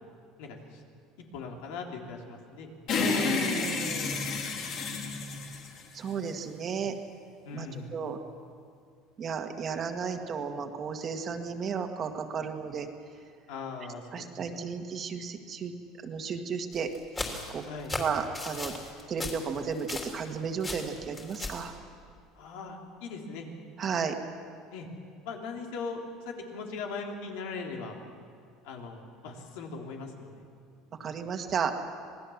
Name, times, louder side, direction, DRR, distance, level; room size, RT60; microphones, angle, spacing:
voice 1, 0.4-0.8 1.3-2.7 6.7-6.8 7.4-7.9 13.5-15.1 17.7-17.9 22.4-23.5 24.7-24.9 25.3-28.0 28.6-30.5, left 4 dB, 85° left, 1 dB, 3.6 m, -40 dB
sound 1, 2.9-6.4, left 5 dB, 50° left, 3.0 m, -30 dB
voice 2, 3.0-4.3 5.9-6.9 7.5-8.2 9.2-12.9 14.1-15.7 16.0-16.9 17.5-17.6 18.0-18.7 19.1-21.7 23.8-24.1 31.0-31.7, right 6 dB, 30° right, 5 dB, 1.7 m, -33 dB
sound 2, 16.7-20.3 20.6-21.7, left 2 dB, 15° left, 3.2 m, -37 dB
26.5 x 19.0 x 7.3 m, 2.3 s
cardioid pair, 145°, 0 cm